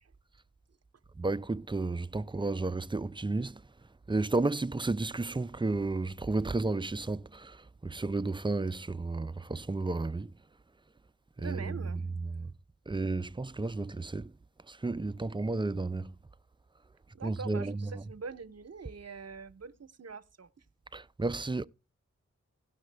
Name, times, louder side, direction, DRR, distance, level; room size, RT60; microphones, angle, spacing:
voice 1, 1.2-3.6 4.1-10.3 11.4-12.5 12.9-14.3 14.7-16.1 17.2-18.0 20.9-21.6, right 3 dB, 15° right, 0.4 m, -32 dB
voice 2, 11.4-12.0 17.1-20.5, right 5 dB, 55° right, 0.8 m, -44 dB
17.0 x 5.8 x 3.3 m
cardioid pair, 40°, 30 cm